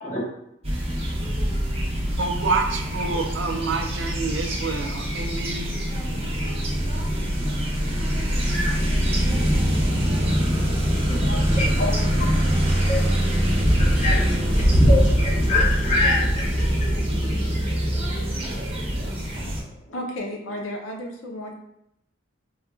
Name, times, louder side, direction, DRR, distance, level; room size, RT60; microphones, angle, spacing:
sound 1, 0.6-19.6, equal, 30° right, 0.7 m, -23 dB
voice 1, 2.2-5.8, right 4 dB, 70° right, 4 dB, 0.4 m, -27 dB
voice 2, 11.1-12.3 12.7-13.0 13.8-14.1 14.5-16.5 17.2-17.4, left 2 dB, 40° left, -3 dB, 0.8 m, -26 dB
voice 3, 19.9-21.5, left 1 dB, 85° left, 1 dB, 0.5 m, -33 dB
3.9 x 2.4 x 2.2 m, 0.80 s
head